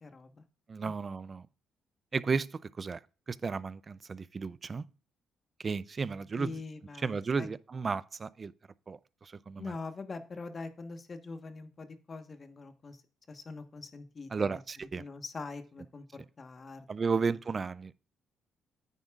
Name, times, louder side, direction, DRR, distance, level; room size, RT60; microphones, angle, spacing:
voice 1, 0.0-0.4 6.3-7.5 9.6-13.0 13.3-14.6 15.0-16.0 16.4-16.9, left 3 dB, 40° left, 1.3 m, -43 dB
voice 2, 0.7-1.5 2.1-3.0 3.3-4.9 5.6-6.5 7.0-8.5 8.9-9.8 14.3-15.0 16.9-17.9, right 5 dB, 35° right, 0.4 m, -33 dB
9.4 x 9.2 x 2.4 m
cardioid pair, 90°, 0 cm